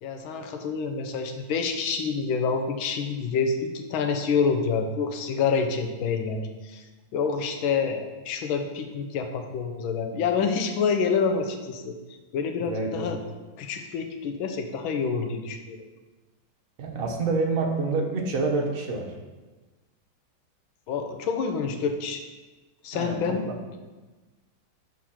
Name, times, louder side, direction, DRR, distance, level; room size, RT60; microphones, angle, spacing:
voice 1, 0.0-6.8 7.1-11.9 12.3-13.2 13.6-15.8 20.9-22.2 22.8-23.4, left 5 dB, 90° left, 5 dB, 1.5 m, -27 dB
voice 2, 12.6-13.1 16.8-19.1 22.9-23.5, right 3 dB, 50° right, 1 dB, 1.2 m, -27 dB
6.3 x 4.4 x 5.7 m, 1.2 s
omnidirectional pair, 2.1 m